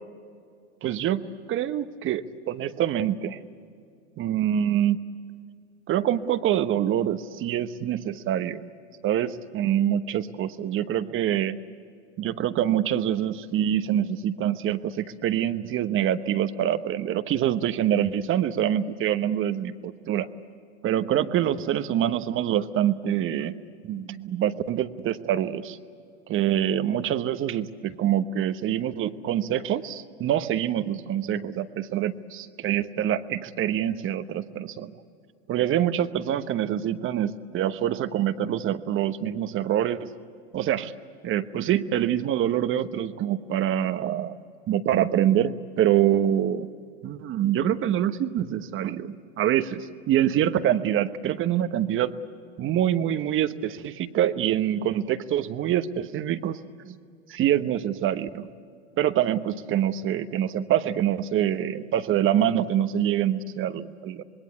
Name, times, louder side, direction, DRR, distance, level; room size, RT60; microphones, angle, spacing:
voice 1, 0.8-3.4 4.2-5.0 5.9-8.6 9.0-11.6 12.2-20.3 20.8-23.6 23.8-25.8 26.3-34.9 35.5-40.1 40.5-40.9 41.2-44.4 44.7-46.7 47.0-52.1 52.6-57.0 57.3-58.5 59.0-64.2, right 11 dB, 35° right, 12 dB, 1.1 m, -25 dB
26.0 x 21.0 x 8.2 m, 2.3 s
hypercardioid pair, 90°, 34 cm